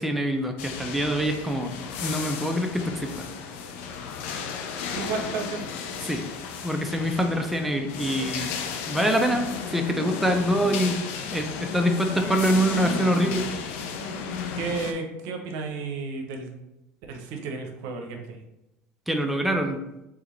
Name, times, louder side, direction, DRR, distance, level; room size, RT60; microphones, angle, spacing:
voice 1, 0.0-1.7 2.0-3.2 6.0-6.2 6.6-8.5 8.9-11.0 11.3-13.5 19.1-19.8, equal, ahead, 3 dB, 0.5 m, -25 dB
sound 1, 0.6-14.9, left 6 dB, 70° left, 0.5 m, -34 dB
voice 2, 5.0-5.7 14.6-16.6 17.1-18.4, right 4 dB, 70° right, 3 dB, 0.7 m, -32 dB
3.6 x 3.4 x 3.1 m, 0.92 s
hypercardioid pair, 75°, 7 cm